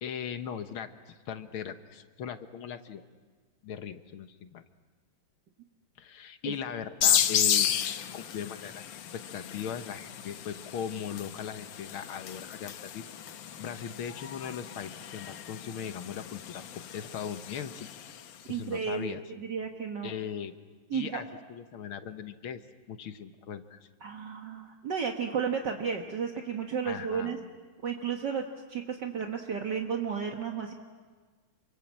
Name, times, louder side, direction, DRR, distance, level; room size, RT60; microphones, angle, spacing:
voice 1, 0.0-3.0 3.6-4.6 6.0-7.8 8.1-8.8 9.1-13.0 13.6-16.6 16.9-17.9 18.5-19.2 20.0-20.6 20.9-22.6 22.9-23.8 26.9-27.4, left 8 dB, 85° left, 9 dB, 2.0 m, -39 dB
sound 1, 7.0-18.4, left 9 dB, 70° left, 1.6 m, -33 dB
voice 2, 18.5-20.1 20.9-21.2 24.0-27.4 27.8-30.7, right 6 dB, 60° right, 2 dB, 2.0 m, -33 dB
28.5 x 24.5 x 7.5 m, 1.5 s
omnidirectional pair, 2.3 m